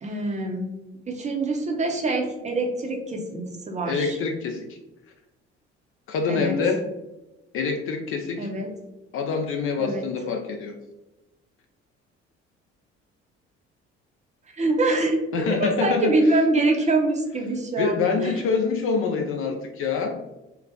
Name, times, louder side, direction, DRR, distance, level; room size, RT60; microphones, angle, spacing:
voice 1, 0.0-0.7 1.1-4.2 6.3-6.5 8.4-8.7 9.8-10.1 14.5-18.4, right 2 dB, 20° right, 1 dB, 0.6 m, -25 dB
voice 2, 3.8-4.8 6.1-6.8 7.5-8.5 9.1-10.7 15.3-16.1 17.8-20.2, left 5 dB, 40° left, 4 dB, 0.4 m, -26 dB
4.0 x 2.0 x 2.6 m, 1.0 s
figure-of-eight pair, 50°, 34 cm